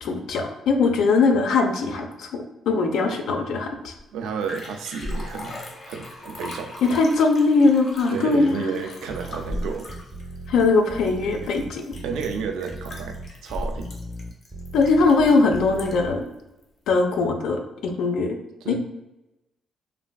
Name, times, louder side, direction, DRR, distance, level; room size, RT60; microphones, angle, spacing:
voice 1, 0.0-3.9 6.8-8.7 10.5-11.9 14.7-16.2 16.9-18.4 18.7-18.8, left 3 dB, 80° left, 4 dB, 0.4 m, -21 dB
Liquid, 4.0-4.1 4.2-16.2 16.6-16.7, left 1 dB, 55° left, 0.8 m, -37 dB
voice 2, 4.1-6.8 8.1-9.9 12.0-14.0 18.6-18.8, right 6 dB, 85° right, 5 dB, 0.3 m, -31 dB
sound 1, 9.1-16.1, right 1 dB, 15° right, 0.4 m, -38 dB
3.2 x 2.5 x 2.2 m, 0.95 s
cardioid pair, 90°, 0 cm